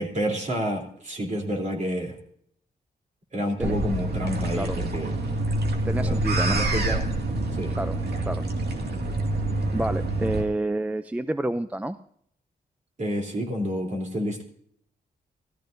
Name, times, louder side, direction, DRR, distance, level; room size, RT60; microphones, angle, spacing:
voice 1, 0.0-2.1 3.3-5.2 6.0-6.2 6.5-7.0 7.5-7.8 13.0-14.4, equal, 45° right, 1 dB, 3.2 m, -29 dB
sound 1, 3.6-10.4, right 1 dB, 75° right, 2.1 m, -26 dB
voice 2, 5.8-6.6 7.8-8.0 8.3-8.5 9.7-12.0, right 1 dB, 10° right, 11 dB, 0.4 m, -29 dB
18.0 x 13.5 x 2.6 m, 0.65 s
wide cardioid pair, 115°, 17 cm